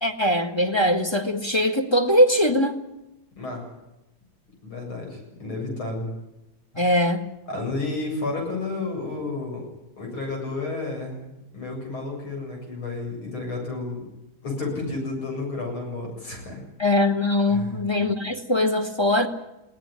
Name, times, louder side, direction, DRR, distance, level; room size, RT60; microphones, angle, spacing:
voice 1, 0.0-2.8 6.7-7.2 16.8-19.3, left 1 dB, 15° left, 5 dB, 1.5 m, -21 dB
voice 2, 3.4-3.7 4.6-6.1 7.5-9.6 10.0-14.0 14.4-16.6 17.5-17.8, left 3 dB, 75° left, 1 dB, 8.7 m, -31 dB
21.5 x 17.5 x 9.9 m, 0.94 s
omnidirectional pair, 2.3 m